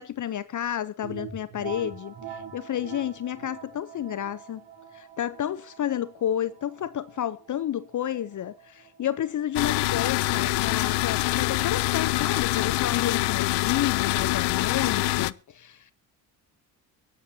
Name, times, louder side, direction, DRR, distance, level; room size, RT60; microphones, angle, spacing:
voice 1, 0.0-4.6 4.9-15.9, left 11 dB, 45° left, 0.7 m, -31 dB
sound 1, 1.0-10.6, right 7 dB, 80° right, 4.3 m, -44 dB
sound 2, 9.6-15.3, left 19 dB, 85° left, 0.6 m, -25 dB
23.5 x 11.5 x 2.7 m
cardioid pair, 85°, 40 cm